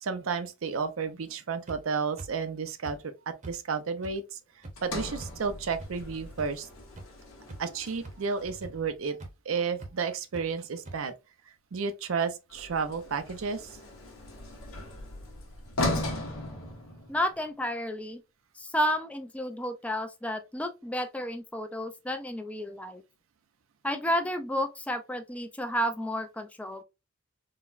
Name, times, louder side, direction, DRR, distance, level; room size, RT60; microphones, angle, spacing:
voice 1, 0.0-3.0 3.5-4.4 4.8-6.7 7.6-9.2 9.5-11.1 11.7-13.7, right 5 dB, 80° right, 0.5 m, -32 dB
sound 1, 1.7-1.8 2.2-2.3 2.8-3.0 3.4-3.5 4.0-4.1 4.6-4.7 5.2-5.3 5.8-5.9 6.4-6.5 7.0-7.1 7.5-7.7 8.0-8.1 8.6-8.7 9.2-9.3 9.8-9.9 10.3-10.4 10.9-11.0, right 2 dB, 35° right, 0.7 m, -42 dB
Sliding door, 4.8-9.0 12.5-17.4, left 1 dB, 85° left, 1.0 m, -37 dB
voice 2, 17.1-18.2 18.6-23.0 23.8-26.8, equal, 5° left, 0.3 m, -31 dB
3.9 x 2.1 x 2.4 m
head